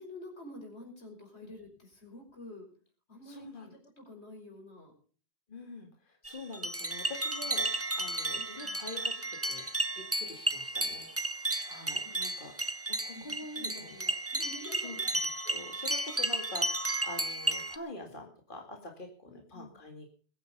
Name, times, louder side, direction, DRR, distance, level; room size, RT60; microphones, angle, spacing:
voice 1, 0.0-2.7 3.1-4.9 8.4-8.8 13.1-13.2 13.5-15.0 19.3-19.8, left 1 dB, 80° left, 2 dB, 5.8 m, -49 dB
voice 2, 3.2-3.7 5.5-9.7 10.0-12.6 12.9-14.1 14.8-15.1 15.4-20.1, left 2 dB, 50° left, 2 dB, 2.4 m, -46 dB
sound 1, 6.2-17.8, right 2 dB, 15° right, 0.9 m, -33 dB
22.0 x 9.2 x 5.3 m, 0.42 s
omnidirectional pair, 1.1 m